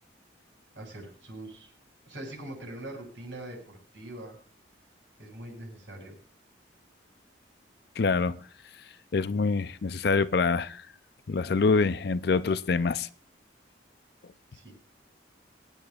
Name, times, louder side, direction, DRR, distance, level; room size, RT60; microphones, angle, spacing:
voice 1, 0.7-1.7 2.1-4.4 5.2-6.1 14.5-14.7, right 1 dB, 70° right, 7.6 m, -42 dB
voice 2, 8.0-8.4 9.1-10.8 11.3-13.1, left 4 dB, 55° left, 0.5 m, -25 dB
25.5 x 9.7 x 2.4 m
head